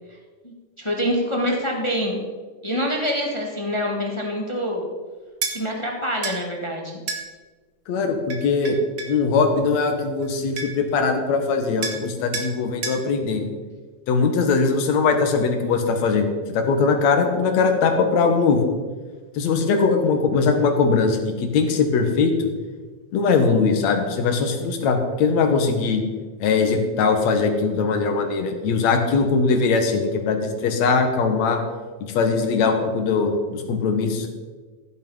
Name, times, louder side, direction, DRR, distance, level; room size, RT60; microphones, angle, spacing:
voice 1, 0.4-2.2 2.6-4.9 5.5-7.0, equal, 20° left, 0 dB, 0.7 m, -26 dB
sound 1, 5.4-5.6 6.2-6.4 7.1-7.2 8.3-9.2 10.2-10.3 10.6-10.9 11.8-12.0 12.3-12.5 12.8-13.0, right 4 dB, 45° right, 1.3 m, -29 dB
voice 2, 7.9-8.8 9.1-13.5 14.1-18.6 19.4-22.5 23.1-26.0 26.4-31.6 32.1-34.3, left 4 dB, 65° left, 5 dB, 2.6 m, -21 dB
15.0 x 8.3 x 5.6 m, 1.4 s
omnidirectional pair, 3.6 m